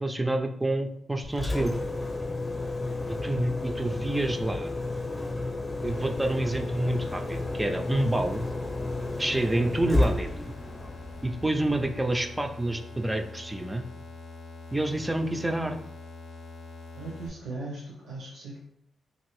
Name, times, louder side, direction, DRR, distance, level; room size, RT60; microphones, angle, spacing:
voice 1, 0.0-1.7 3.1-4.7 5.8-8.4 9.2-10.5 11.2-13.8 14.7-15.8, right 1 dB, 15° right, 4 dB, 0.3 m, -28 dB
Engine, 1.2-12.2, left 2 dB, 25° left, 0.6 m, -32 dB
sound 1, 5.9-17.3, left 3 dB, 90° left, 0.5 m, -44 dB
voice 2, 16.9-18.6, right 2 dB, 85° right, -5 dB, 0.7 m, -38 dB
2.6 x 2.5 x 3.1 m, 0.73 s
cardioid pair, 60°, 0 cm